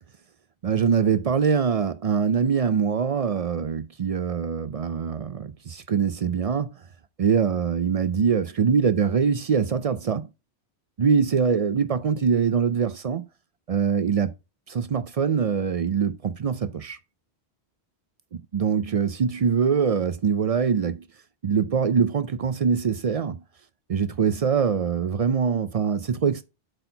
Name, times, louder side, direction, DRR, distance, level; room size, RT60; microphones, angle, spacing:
voice 1, 0.6-6.7 7.2-10.3 11.0-13.3 13.7-14.3 14.7-17.0 18.5-21.0 21.4-23.4 23.9-26.4, right 6 dB, 55° right, 0.4 m, -23 dB
7.8 x 4.4 x 3.9 m
omnidirectional pair, 1.1 m